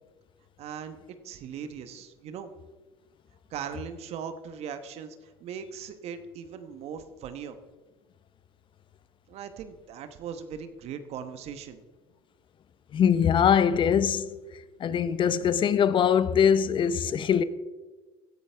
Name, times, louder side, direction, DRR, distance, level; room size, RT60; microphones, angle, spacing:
voice 1, 0.6-1.0 1.2-2.5 3.5-7.6 9.3-11.8, right 7 dB, 55° right, 1.1 m, -39 dB
voice 2, 12.9-14.3 14.8-17.4, left 8 dB, 40° left, 0.8 m, -22 dB
16.5 x 11.0 x 3.5 m
hypercardioid pair, 75°, 12 cm